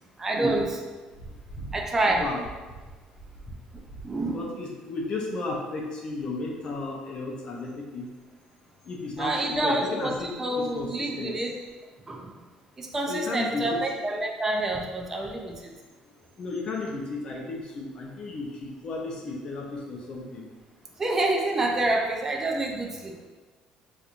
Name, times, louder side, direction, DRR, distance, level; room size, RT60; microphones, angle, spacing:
voice 1, 0.2-0.8 1.7-2.3 3.7-4.5 9.2-11.6 12.1-12.4 12.8-15.7 21.0-23.2, right 2 dB, 15° right, 1 dB, 0.4 m, -28 dB
voice 2, 1.2-1.8 2.2-2.4 3.5-3.6 4.3-8.1 8.8-11.3 13.1-13.8 16.4-20.5, left 3 dB, 40° left, -1 dB, 0.6 m, -34 dB
4.3 x 2.4 x 2.5 m, 1.3 s
cardioid pair, 140°, 2 cm